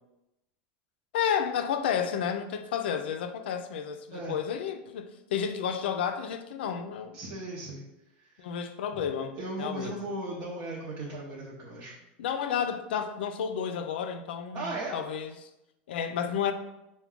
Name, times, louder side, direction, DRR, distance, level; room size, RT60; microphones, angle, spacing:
voice 1, 1.1-7.2 8.4-10.0 12.2-15.5 15.9-16.5, left 8 dB, 90° left, 7 dB, 0.4 m, -31 dB
voice 2, 7.1-7.8 8.2-8.5 9.4-11.9 14.5-15.0, right 2 dB, 45° right, -5 dB, 0.7 m, -37 dB
4.6 x 2.2 x 3.6 m, 0.93 s
supercardioid pair, 135°, 5 cm